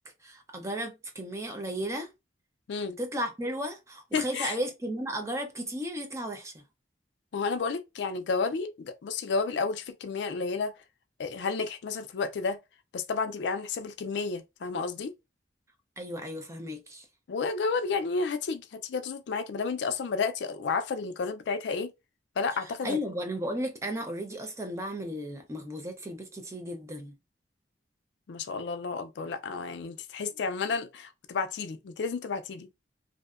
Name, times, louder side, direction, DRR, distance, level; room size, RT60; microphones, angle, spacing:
voice 1, 0.2-2.1 2.7-6.6 16.0-17.1 22.5-27.1, equal, 15° right, 0.5 m, -35 dB
voice 2, 4.1-4.6 7.3-10.7 11.2-12.6 12.9-15.1 17.3-21.9 22.4-23.0 28.3-32.7, left 4 dB, 80° left, 0.4 m, -31 dB
2.6 x 2.1 x 2.4 m
head